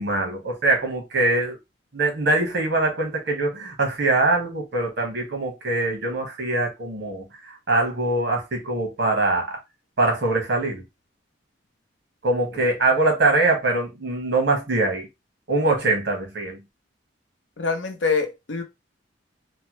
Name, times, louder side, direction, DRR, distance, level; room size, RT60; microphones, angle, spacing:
voice 1, 0.0-1.6 1.9-9.6 10.0-10.8 12.2-15.1 15.5-16.6, right 2 dB, 65° right, 1.2 m, -23 dB
voice 2, 17.6-18.6, left 4 dB, 75° left, 0.7 m, -25 dB
3.1 x 2.2 x 2.9 m
head